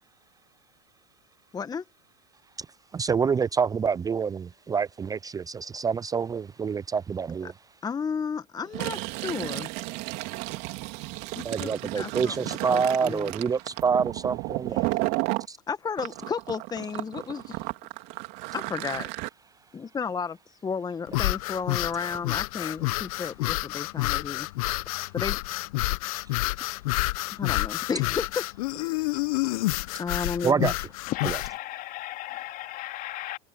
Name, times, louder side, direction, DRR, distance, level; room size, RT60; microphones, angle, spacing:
voice 1, 1.5-1.8 7.8-9.7 11.3-13.3 14.8-15.0 15.7-17.6 18.5-19.1 19.7-20.4 20.6-24.5 25.1-25.4 27.4-28.4 28.8-29.1 30.0-30.7, left 6 dB, 20° left, 1.3 m, -33 dB
voice 2, 2.9-7.5 11.4-14.9 15.5-15.6 30.4-30.7 31.2-31.4, right 6 dB, 20° right, 0.6 m, -27 dB
Fill (with liquid), 8.7-15.5 16.0-19.3, right 24 dB, 60° right, 3.1 m, -33 dB
sound 1, 21.1-31.5, left 20 dB, 70° left, 1.0 m, -29 dB
voice 3, 31.1-33.4, left 15 dB, 45° left, 2.9 m, -35 dB
hypercardioid pair, 90°, 19 cm